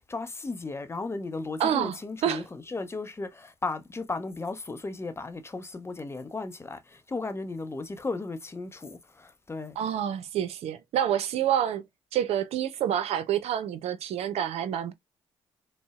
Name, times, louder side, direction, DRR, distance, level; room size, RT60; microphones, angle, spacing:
voice 1, 0.0-9.8, left 3 dB, 25° left, 0.6 m, -35 dB
voice 2, 1.6-2.4 9.8-11.8 12.1-14.9, right 10 dB, 70° right, 0.5 m, -28 dB
3.8 x 2.0 x 2.2 m
supercardioid pair, 55°, 11 cm